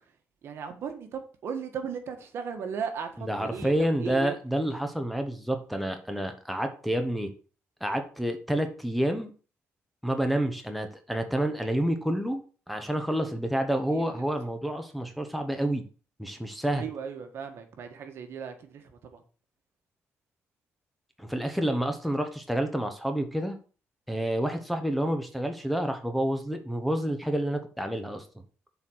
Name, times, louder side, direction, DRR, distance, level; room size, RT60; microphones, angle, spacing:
voice 1, 0.4-3.7 4.0-4.3 13.9-14.0 16.7-18.8 19.1-19.2, right 7 dB, 60° right, 6 dB, 1.4 m, -36 dB
voice 2, 3.2-7.3 7.8-9.3 10.0-12.4 12.7-15.8 16.2-16.8 21.2-23.6 24.1-28.2, right 1 dB, ahead, 5 dB, 0.9 m, -29 dB
7.1 x 4.2 x 6.3 m, 0.38 s
cardioid pair, 140°, 5 cm